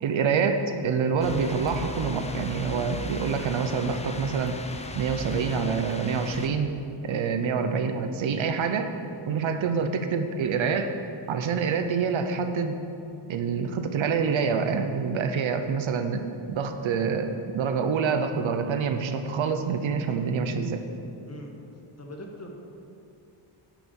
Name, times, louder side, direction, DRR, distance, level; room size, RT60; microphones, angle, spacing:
voice 1, 0.0-4.6 4.9-6.7 7.0-8.9 9.2-11.0 11.3-12.8 13.3-20.8, right 5 dB, 70° right, 7 dB, 0.9 m, -26 dB
sound 1, 1.2-6.5, left 2 dB, 15° left, 0.5 m, -37 dB
voice 2, 21.2-21.6 22.0-22.5, equal, 30° left, 1 dB, 1.4 m, -42 dB
10.5 x 6.0 x 7.1 m, 2.7 s
wide cardioid pair, 145°, 49 cm